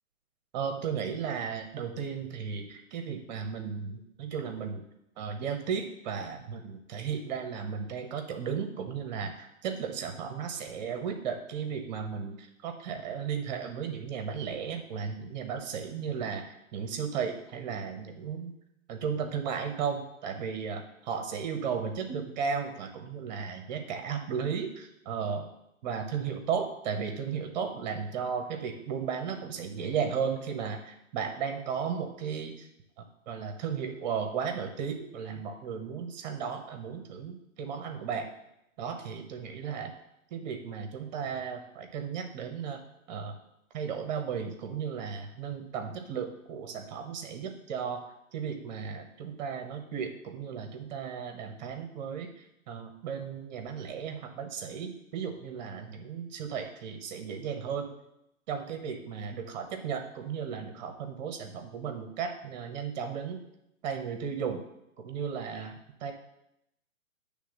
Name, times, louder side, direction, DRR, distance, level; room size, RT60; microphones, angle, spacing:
voice 1, 0.5-4.8 5.2-16.4 16.7-18.5 18.9-25.5 25.8-32.7 33.0-38.3 38.8-39.9 40.3-42.8 43.1-43.4 43.7-48.0 48.3-57.9 58.5-63.4 63.8-64.6 65.0-65.7 66.0-66.1, right 6 dB, 30° right, 6 dB, 1.1 m, -35 dB
9.5 x 3.5 x 6.6 m, 0.82 s
hypercardioid pair, 150°, 41 cm